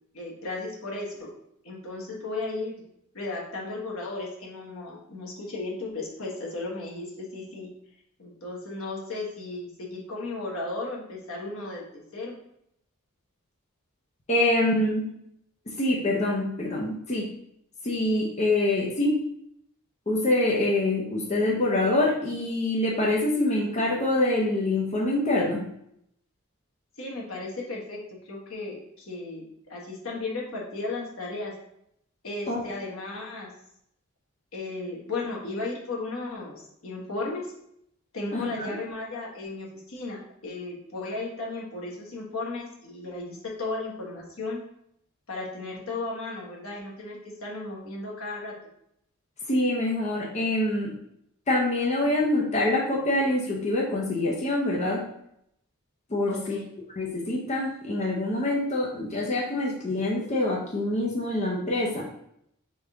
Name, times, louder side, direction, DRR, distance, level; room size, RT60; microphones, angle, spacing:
voice 1, 0.1-1.3 1.6-2.7 3.1-7.7 8.2-12.3 27.0-28.0 28.3-31.5 32.2-33.5 34.5-37.4 38.1-44.6 45.3-48.5 56.3-56.7, left 2 dB, 80° left, -2 dB, 1.2 m, -35 dB
voice 2, 14.3-15.1 15.7-17.3 17.8-19.2 20.1-25.6 32.5-32.6 38.3-38.7 49.5-50.9 51.5-55.1 56.1-56.6 57.0-62.0, left 1 dB, 35° left, -3 dB, 0.7 m, -25 dB
3.9 x 3.6 x 3.5 m, 0.74 s
head